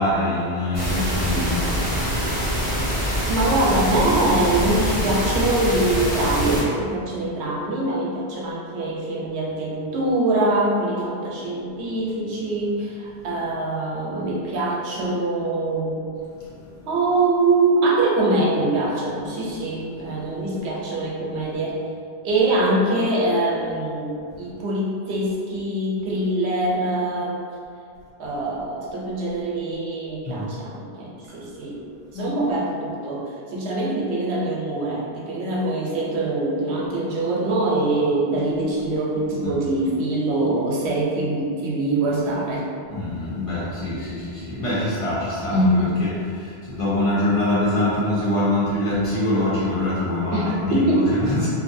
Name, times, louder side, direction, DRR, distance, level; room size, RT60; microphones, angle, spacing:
voice 1, 0.0-2.1 16.6-16.8 20.2-20.3 30.3-30.5 32.1-32.3 39.4-39.5 42.9-46.1 46.3-51.5, left 1 dB, 35° left, -10 dB, 0.7 m, -24 dB
sound 1, 0.7-6.6, equal, 10° left, 1.0 m, -24 dB
voice 2, 3.3-16.1 16.9-21.8 22.2-27.4 28.2-31.8 32.1-42.7 45.5-45.9 50.3-51.1, right 2 dB, 90° right, -4 dB, 0.9 m, -23 dB
2.6 x 2.5 x 2.5 m, 2.4 s
omnidirectional pair, 1.1 m